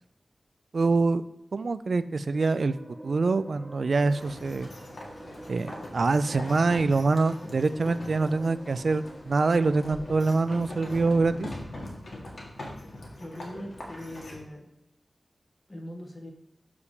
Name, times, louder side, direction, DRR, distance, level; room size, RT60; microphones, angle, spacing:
voice 1, 0.7-1.2 1.5-2.8 3.0-4.7 5.5-11.5, right 3 dB, 70° right, 13 dB, 0.3 m, -25 dB
sound 1, 2.0-11.3, right 1 dB, 25° right, 2.9 m, -47 dB
sound 2, 4.1-14.4, left 1 dB, 70° left, 2.0 m, -42 dB
voice 2, 13.1-14.7 15.7-16.3, left 1 dB, 25° left, 1 dB, 1.7 m, -41 dB
6.8 x 5.0 x 5.0 m, 0.84 s
wide cardioid pair, 75°, 0 cm